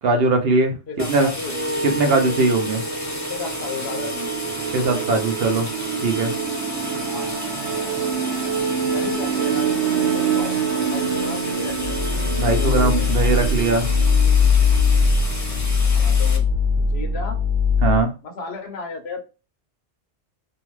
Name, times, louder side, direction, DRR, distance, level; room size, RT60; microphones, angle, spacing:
voice 1, 0.0-0.7 1.1-1.3 1.8-2.8 4.7-5.7 6.0-6.3 12.4-13.9 17.8-18.1, right 3 dB, 60° right, 4 dB, 0.8 m, -20 dB
voice 2, 0.9-1.5 3.3-4.4 7.0-7.3 8.4-9.8 10.1-10.6 10.9-12.1 12.5-13.1 15.8-16.5 16.8-17.4 18.2-19.2, left 4 dB, 65° left, 5 dB, 0.9 m, -34 dB
sound 1, 1.0-16.4, left 1 dB, 25° left, 0.4 m, -33 dB
sound 2, 1.5-18.0, left 2 dB, 90° right, 1.0 m, -22 dB
2.7 x 2.3 x 3.0 m, 0.31 s
omnidirectional pair, 1.2 m